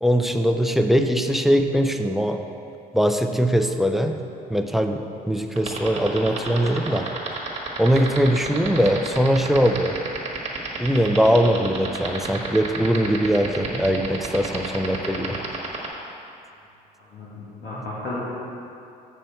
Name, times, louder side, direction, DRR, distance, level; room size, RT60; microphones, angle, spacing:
voice 1, 0.0-2.4 2.9-4.2 4.5-7.1 7.8-9.9 10.8-15.4 17.7-17.8, equal, ahead, 6 dB, 0.4 m, -21 dB
sound 1, 5.6-15.9, right 5 dB, 40° right, 1.3 m, -29 dB
voice 2, 17.1-18.2, left 2 dB, 65° left, -9 dB, 1.9 m, -33 dB
7.4 x 6.9 x 4.3 m, 2.6 s
cardioid pair, 110°, 17 cm